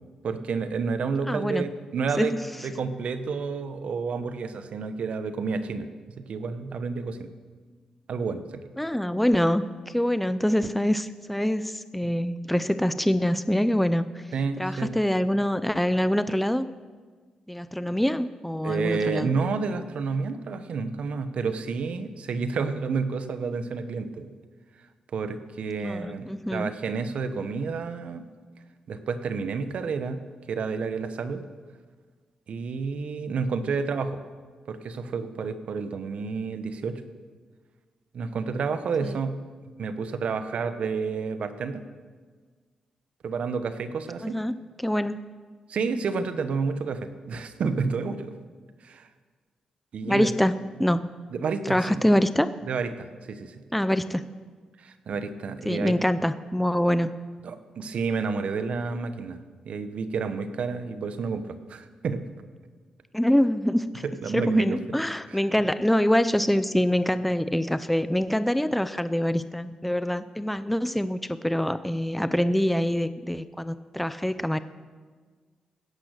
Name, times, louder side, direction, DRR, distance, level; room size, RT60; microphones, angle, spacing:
voice 1, 0.2-2.4 2.6-5.9 6.2-7.3 8.1-8.6 14.3-15.0 18.6-24.3 25.1-28.2 28.9-30.2 30.5-31.4 32.5-34.2 34.7-37.0 38.1-39.3 39.8-41.8 43.2-44.4 45.7-48.3 48.8-49.1 49.9-50.3 51.3-52.0 52.6-53.6 54.8-56.0 57.4-59.4 59.6-62.2 64.2-64.7, right 5 dB, 65° right, 10 dB, 1.1 m, -30 dB
voice 2, 1.3-1.7 2.2-2.4 8.8-14.2 14.6-16.7 17.5-19.3 25.8-26.7 39.0-39.2 44.2-45.2 50.0-51.1 51.7-52.5 53.7-54.3 55.7-57.1 63.1-64.1 64.3-74.6, equal, 5° left, 13 dB, 0.6 m, -25 dB
16.5 x 10.5 x 6.6 m, 1.5 s
cardioid pair, 65°, 2 cm